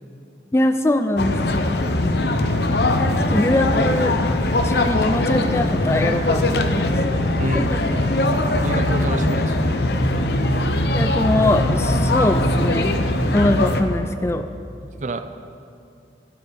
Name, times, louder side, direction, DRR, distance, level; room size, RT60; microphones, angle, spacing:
voice 1, 0.5-1.8 3.3-4.1 4.6-6.9 7.5-7.9 10.9-13.0 13.3-14.5, left 1 dB, 15° left, 8 dB, 0.3 m, -22 dB
sound 1, 1.2-13.8, left 1 dB, 65° left, 0.8 m, -20 dB
voice 2, 7.4-7.7 8.6-9.8 15.0-15.2, right 2 dB, 40° right, 9 dB, 0.5 m, -27 dB
20.5 x 7.3 x 5.2 m, 2.5 s
head